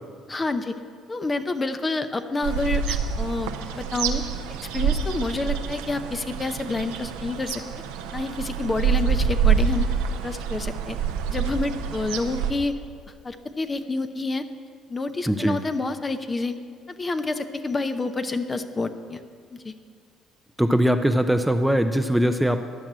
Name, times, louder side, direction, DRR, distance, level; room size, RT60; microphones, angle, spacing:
voice 1, 0.3-0.7 1.1-4.2 4.7-7.6 8.1-9.9 10.2-11.0 11.3-12.7 13.2-14.4 14.9-16.5 16.9-19.2 19.5-19.7, left 3 dB, 25° left, 9 dB, 0.8 m, -28 dB
sound 1, 2.4-12.5, right 7 dB, 90° right, 0.8 m, -26 dB
voice 2, 15.3-15.6 20.6-22.6, equal, 5° right, 8 dB, 0.6 m, -21 dB
11.5 x 6.1 x 8.8 m, 2.1 s
supercardioid pair, 70°, 0 cm